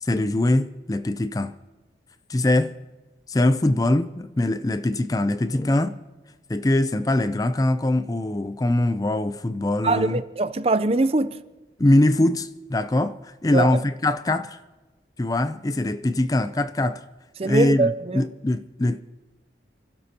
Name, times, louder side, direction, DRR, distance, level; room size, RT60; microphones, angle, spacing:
voice 1, 0.0-1.5 2.3-2.7 3.3-6.0 6.5-10.2 11.8-14.6 15.2-17.0 17.4-19.0, left 1 dB, 20° left, 0.4 m, -22 dB
voice 2, 9.8-11.4 13.5-13.7 17.4-18.2, right 2 dB, 35° right, 0.5 m, -22 dB
29.5 x 12.0 x 2.9 m
head